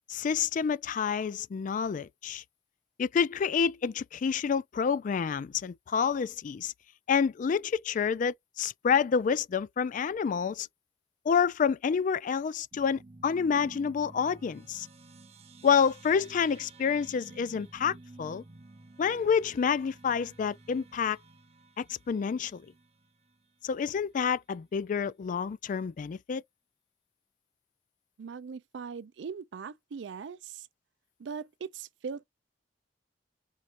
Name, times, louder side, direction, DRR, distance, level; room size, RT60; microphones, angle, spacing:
voice 1, 0.1-2.4 3.0-6.7 7.1-10.7 11.3-14.9 15.6-18.4 19.0-21.2 21.8-22.6 23.6-26.4, left 6 dB, 45° left, 0.3 m, -28 dB
sound 1, 12.7-23.5, right 2 dB, 35° right, 0.6 m, -52 dB
voice 2, 28.2-30.7 31.2-32.2, right 6 dB, 75° right, 0.4 m, -40 dB
4.6 x 2.7 x 2.5 m
head